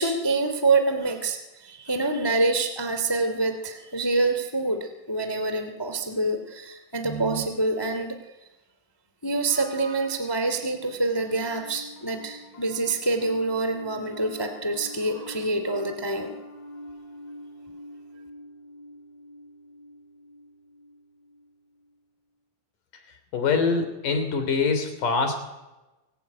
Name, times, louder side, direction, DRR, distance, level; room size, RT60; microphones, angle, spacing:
voice 1, 0.0-8.2 9.2-16.3, right 3 dB, 25° left, 7 dB, 0.5 m, -26 dB
Piano, 10.4-21.9, left 1 dB, 75° left, 5.6 m, -45 dB
voice 2, 22.9-25.4, left 4 dB, 45° left, 8 dB, 4.3 m, -25 dB
29.5 x 18.0 x 9.5 m, 1.1 s
omnidirectional pair, 5.4 m